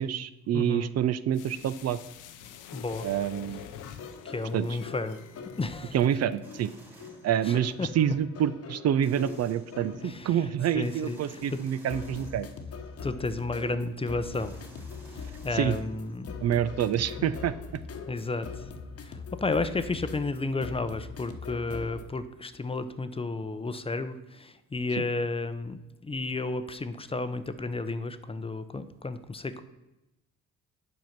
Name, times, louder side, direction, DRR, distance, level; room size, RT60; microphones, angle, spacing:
voice 1, 0.0-2.0 3.0-3.6 4.5-4.7 5.9-6.7 7.2-12.5 15.5-15.8 16.4-17.5 25.0-25.1, right 10 dB, 55° right, 14 dB, 0.5 m, -27 dB
voice 2, 0.5-0.9 2.7-3.1 4.2-5.2 5.6-5.9 7.4-7.9 10.0-10.3 10.7-11.6 13.0-14.5 15.1-16.3 17.2-17.3 18.1-18.7 19.0-29.6, left 3 dB, 20° left, 11 dB, 0.6 m, -32 dB
sound 1, 1.3-6.4 6.7-6.8, left 9 dB, 85° left, 0.8 m, -46 dB
sound 2, 3.7-22.0, left 5 dB, 50° left, 1.0 m, -42 dB
sound 3, 6.4-8.0 9.0-10.2 10.8-13.4 14.4-16.4, equal, 5° right, 1.8 m, -54 dB
7.8 x 5.4 x 5.8 m, 0.98 s
cardioid pair, 90°, 30 cm